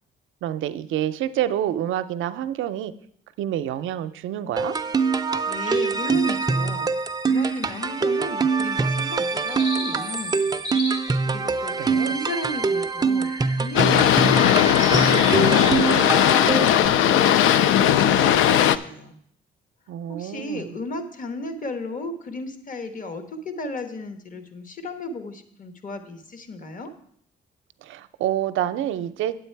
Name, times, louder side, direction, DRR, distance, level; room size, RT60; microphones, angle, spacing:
voice 1, 0.4-2.9 3.4-4.8 11.8-12.1 19.9-20.7 27.8-29.3, right 11 dB, 80° right, 11 dB, 0.5 m, -27 dB
sound 1, 4.6-16.9, right 4 dB, 20° right, 0.5 m, -24 dB
voice 2, 5.5-6.9 7.3-10.6 11.3-14.6 14.9-19.2 20.1-26.9, left 2 dB, 40° left, 9 dB, 1.2 m, -35 dB
sound 2, 5.7-6.2 7.3-7.9 8.3-8.5 9.1-12.5 13.2-13.7 14.0-14.1 14.5-16.1 16.4-16.6, left 1 dB, 65° left, 3.1 m, -35 dB
Boat Water vehicle, 13.7-18.8, left 10 dB, 85° left, 0.4 m, -18 dB
9.0 x 7.9 x 4.5 m, 0.66 s
cardioid pair, 90°, 20 cm